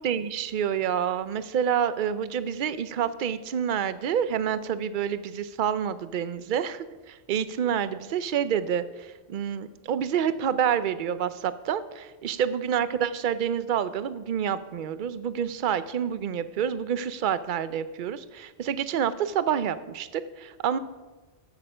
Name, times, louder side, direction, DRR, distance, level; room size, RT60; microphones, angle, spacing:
voice 1, 0.0-20.8, right 8 dB, 55° right, 14 dB, 0.7 m, -28 dB
14.5 x 6.6 x 5.5 m, 1.2 s
omnidirectional pair, 1.1 m